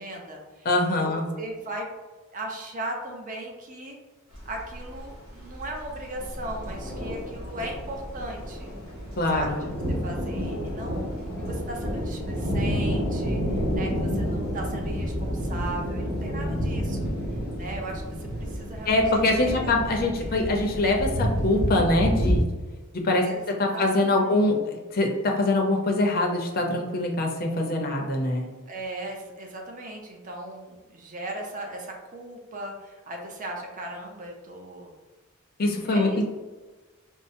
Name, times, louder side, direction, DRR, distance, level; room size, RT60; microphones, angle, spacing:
voice 1, 0.0-0.7 1.0-1.9 2.3-4.0 4.4-8.7 9.3-9.6 9.9-11.1 11.4-17.1 17.6-19.0 19.4-20.4 23.2-23.4 23.7-24.5 28.7-34.9 35.8-36.2, right 1 dB, 35° right, 1 dB, 0.6 m, -37 dB
voice 2, 0.6-1.3 9.2-9.6 18.9-22.4 22.9-28.5 35.6-36.2, left 2 dB, 45° left, 1 dB, 0.6 m, -24 dB
sound 1, 4.3-22.4, equal, 65° right, 1.4 m, -30 dB
5.3 x 2.0 x 2.6 m, 1.2 s
head